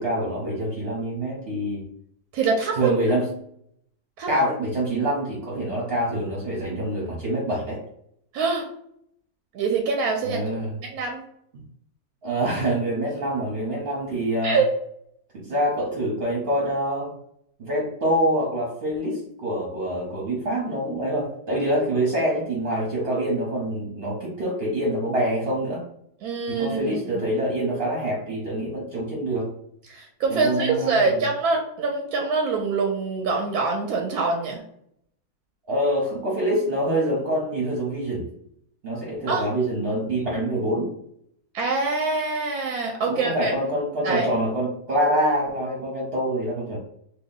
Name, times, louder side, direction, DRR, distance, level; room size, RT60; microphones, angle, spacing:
voice 1, 0.0-1.9 2.7-3.3 4.3-7.8 10.2-10.8 11.5-11.6 12.2-14.6 15.3-17.1 17.6-25.8 26.5-29.5 30.3-31.2 35.7-38.3 38.8-40.9 43.1-46.8, right 1 dB, 45° right, -4 dB, 0.8 m, -25 dB
voice 2, 2.3-2.9 4.2-4.3 8.3-8.7 9.5-11.2 14.4-14.7 26.2-27.0 29.9-34.6 39.3-39.5 41.5-43.5 44.0-44.3, right 4 dB, 70° right, 1 dB, 1.0 m, -25 dB
2.9 x 2.3 x 3.9 m, 0.71 s
omnidirectional pair, 1.9 m